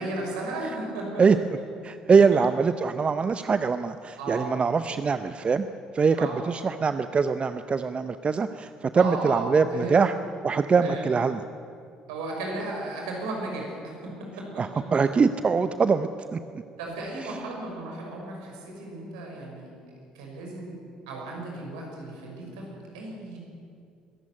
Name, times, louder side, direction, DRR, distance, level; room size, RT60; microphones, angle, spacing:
voice 1, 0.0-1.4 2.1-2.4 4.2-4.6 4.9-5.0 6.2-6.4 8.9-10.0 10.8-11.1 12.1-14.5 16.8-19.7 20.1-20.8 21.1-23.4, right 2 dB, 75° right, 0 dB, 6.0 m, -35 dB
voice 2, 1.8-5.7 5.9-10.1 10.4-11.4 14.6-16.4 17.2-17.4, right 5 dB, 30° right, 11 dB, 0.8 m, -23 dB
22.0 x 14.5 x 9.6 m, 2.4 s
figure-of-eight pair, 55°, 4 cm